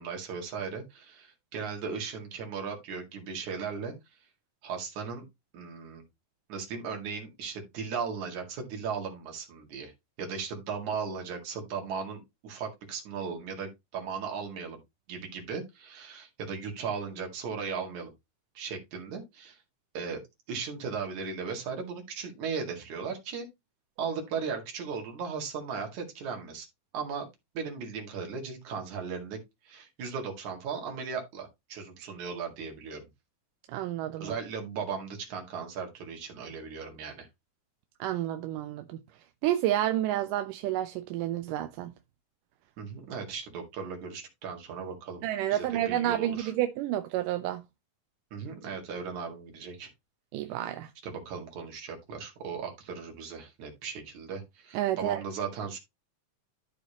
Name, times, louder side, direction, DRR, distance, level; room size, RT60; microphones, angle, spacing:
voice 1, 0.0-3.9 4.6-5.2 5.5-6.0 6.5-9.9 10.2-14.8 15.1-18.1 18.6-19.6 19.9-20.2 20.5-23.5 24.0-26.7 26.9-27.3 27.6-33.0 34.2-37.3 42.8-46.5 48.3-49.9 51.0-55.8, right 5 dB, 65° right, 3.4 m, -37 dB
voice 2, 33.7-34.3 38.0-39.0 39.4-41.9 45.2-47.6 50.3-50.9 54.7-55.2, right 13 dB, 85° right, 2.2 m, -30 dB
13.0 x 5.1 x 2.9 m
omnidirectional pair, 3.7 m